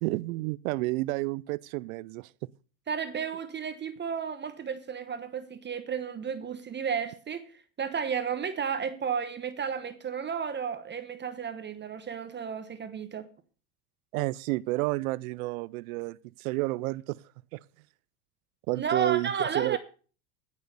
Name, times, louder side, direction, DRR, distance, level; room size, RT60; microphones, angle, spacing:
voice 1, 0.0-2.3 14.1-17.2 17.5-17.6 18.7-19.8, right 21 dB, 80° right, 0.5 m, -30 dB
voice 2, 2.9-13.3 18.7-19.8, right 7 dB, 25° right, 1.1 m, -33 dB
16.5 x 6.5 x 6.7 m
supercardioid pair, 110°, 41 cm